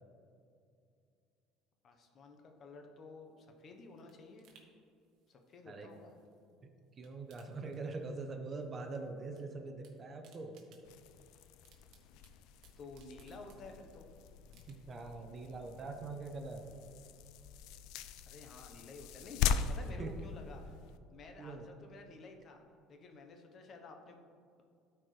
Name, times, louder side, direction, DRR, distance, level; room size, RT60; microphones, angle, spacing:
voice 1, 1.8-4.5 5.3-6.1 12.8-14.1 18.3-20.6 21.1-22.6 22.9-24.2, left 3 dB, 40° left, 4 dB, 1.0 m, -52 dB
sound 1, 3.3-6.5 6.8-8.4 8.6-9.4 9.7-14.0 14.5-15.1 15.5-15.6, right 6 dB, 60° right, 1.2 m, -68 dB
voice 2, 7.0-10.6 14.7-16.7 20.0-20.1 21.4-21.6, right 3 dB, 30° right, 4 dB, 0.8 m, -43 dB
sound 2, 10.8-21.0, left 7 dB, 75° left, 0.4 m, -41 dB
12.5 x 4.5 x 3.3 m, 2.4 s
cardioid pair, 130°, 0 cm